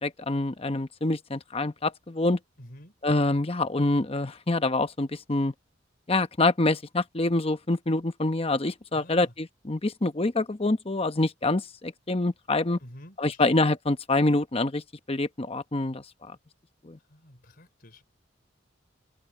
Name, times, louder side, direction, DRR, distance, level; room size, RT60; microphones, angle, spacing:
voice 1, 0.0-2.4 3.0-5.5 6.1-12.8 13.2-14.8 15.1-16.0 16.8-17.0, left 2 dB, 30° left, 1.0 m, -26 dB
voice 2, 2.6-2.9 8.9-9.3 12.8-13.6 17.1-18.0, equal, 50° left, 3.8 m, -49 dB
head